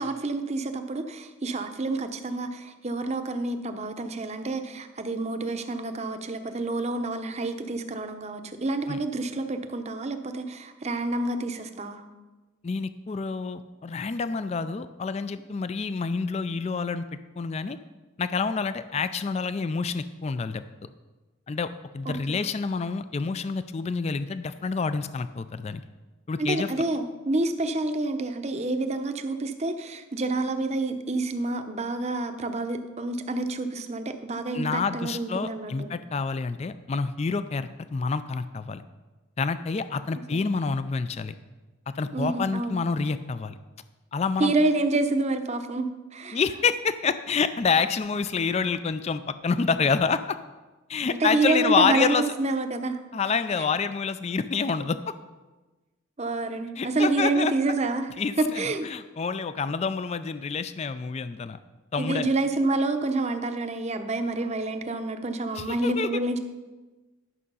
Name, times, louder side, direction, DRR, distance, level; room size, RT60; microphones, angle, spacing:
voice 1, 0.0-12.0 22.1-22.4 26.4-35.9 40.3-40.4 42.1-42.8 44.4-46.4 51.1-53.0 56.2-58.1 58.4-58.9 62.0-66.4, right 2 dB, 30° right, 7 dB, 0.7 m, -28 dB
voice 2, 12.6-17.1 17.4-17.8 18.2-20.6 21.5-25.8 26.3-26.7 34.5-38.8 39.4-41.3 42.0-43.6 44.1-44.5 46.3-50.4 50.9-52.2 53.1-55.0 56.8-57.5 58.2-61.6 61.9-62.3 65.5-66.1, left 5 dB, 30° left, 12 dB, 0.3 m, -28 dB
11.0 x 6.3 x 5.5 m, 1.2 s
head